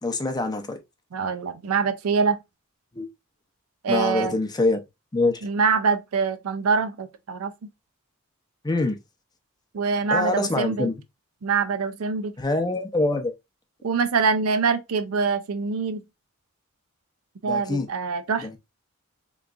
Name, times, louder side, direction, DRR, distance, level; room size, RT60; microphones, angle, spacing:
voice 1, 0.0-0.8 2.9-3.1 3.9-4.8 5.1-5.4 8.6-9.0 10.1-10.9 12.4-13.3 17.4-17.9 18.4-18.6, left 2 dB, 20° left, 0.5 m, -24 dB
voice 2, 1.1-2.4 3.8-4.4 5.4-7.7 9.7-10.9 11.4-12.3 13.8-16.0 17.4-18.6, right 5 dB, 90° right, 0.5 m, -24 dB
3.4 x 3.0 x 2.4 m
head